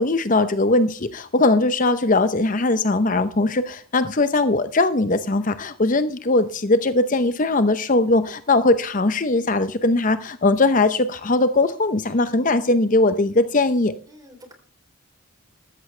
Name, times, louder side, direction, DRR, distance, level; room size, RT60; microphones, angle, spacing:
voice 1, 0.0-13.9, left 2 dB, 40° left, 11 dB, 0.7 m, -20 dB
voice 2, 12.0-12.6 14.1-14.5, left 1 dB, 15° right, 5 dB, 3.3 m, -49 dB
14.5 x 13.5 x 3.3 m, 0.40 s
head